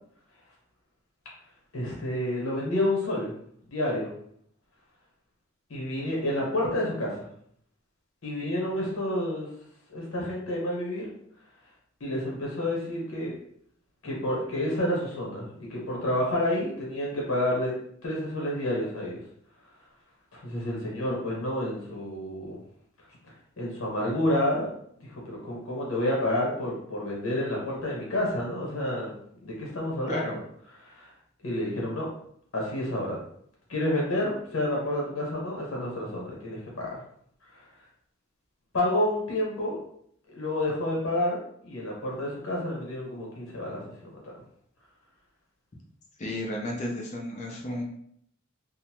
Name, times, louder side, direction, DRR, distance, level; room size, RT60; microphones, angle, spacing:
voice 1, 1.7-3.3 3.7-4.1 5.7-7.2 8.2-9.5 9.9-11.1 12.0-13.3 14.0-17.8 18.0-19.2 20.3-22.6 23.6-24.7 25.0-29.1 29.4-30.4 30.8-31.1 31.4-32.1 32.5-33.2 33.7-37.0 37.5-37.6 38.7-39.8 40.3-43.8, left 1 dB, 75° left, -3 dB, 1.2 m, -29 dB
voice 2, 46.2-47.8, left 1 dB, 35° left, -1 dB, 0.6 m, -33 dB
2.7 x 2.1 x 2.9 m, 0.67 s
head